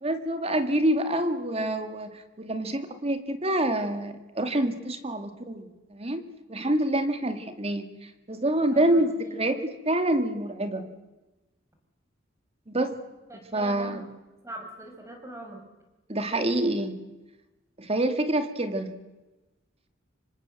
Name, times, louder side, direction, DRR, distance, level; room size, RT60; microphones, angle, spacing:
voice 1, 0.0-6.2 6.5-7.9 8.3-10.9 12.7-13.0 13.5-14.0 16.1-17.0 17.8-19.0, right 1 dB, 35° right, 8 dB, 2.3 m, -27 dB
voice 2, 8.7-9.3 13.3-14.0 14.4-15.6, right 1 dB, 15° right, 3 dB, 5.5 m, -42 dB
26.0 x 26.0 x 7.8 m, 1.1 s
head